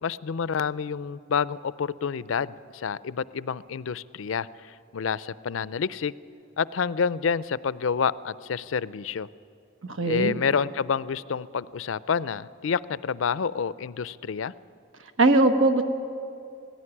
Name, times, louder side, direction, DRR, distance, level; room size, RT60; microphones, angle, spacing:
voice 1, 0.0-6.1 6.6-9.3 10.1-14.5, left 6 dB, 75° left, 19 dB, 0.5 m, -28 dB
voice 2, 10.0-10.3 15.2-15.8, right 2 dB, 85° right, 8 dB, 1.3 m, -19 dB
18.5 x 16.0 x 9.9 m, 2.5 s
head